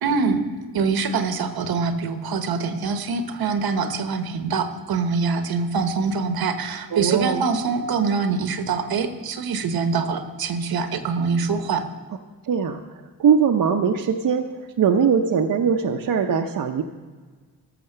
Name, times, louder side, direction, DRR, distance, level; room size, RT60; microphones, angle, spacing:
voice 1, 0.0-0.4 0.7-11.8, right 5 dB, 80° right, 8 dB, 1.1 m, -24 dB
voice 2, 6.9-7.4 12.4-16.8, right 7 dB, 65° right, 3 dB, 0.7 m, -21 dB
14.0 x 5.6 x 6.7 m, 1.5 s
cardioid pair, 80°, 36 cm